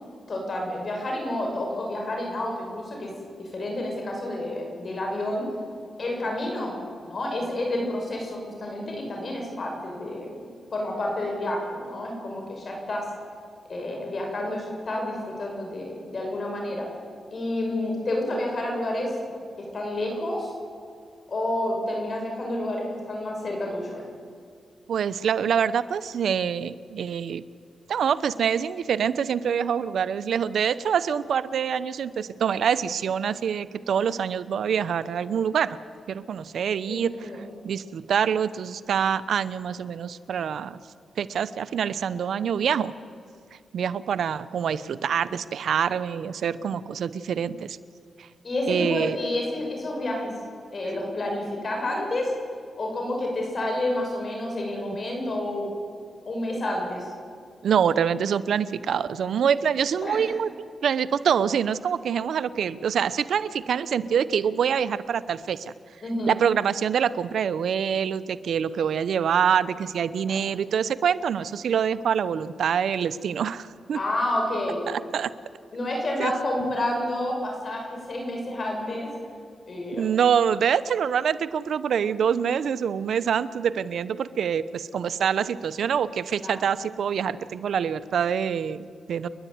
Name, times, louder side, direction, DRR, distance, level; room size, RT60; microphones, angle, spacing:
voice 1, 0.3-3.1 3.4-5.5 6.0-6.7 7.0-10.4 10.7-13.1 13.7-16.9 17.3-19.1 19.7-20.5 21.3-24.0 36.9-37.4 48.4-50.3 50.7-52.3 52.8-55.7 56.3-57.1 60.0-60.3 66.0-66.3 70.3-70.4 73.9-74.8 75.7-79.1 79.7-80.0 86.4-86.5, left 1 dB, 50° left, 0 dB, 6.1 m, -29 dB
voice 2, 24.9-27.4 27.9-35.8 36.1-37.3 37.6-40.8 41.2-42.9 43.7-47.8 48.2-48.3 48.7-49.2 57.6-60.5 60.8-65.7 66.3-74.0 74.9-75.3 76.2-76.3 79.9-89.3, right 7 dB, 80° right, 16 dB, 0.7 m, -25 dB
29.5 x 11.0 x 9.4 m, 2.2 s
cardioid pair, 70°, 0 cm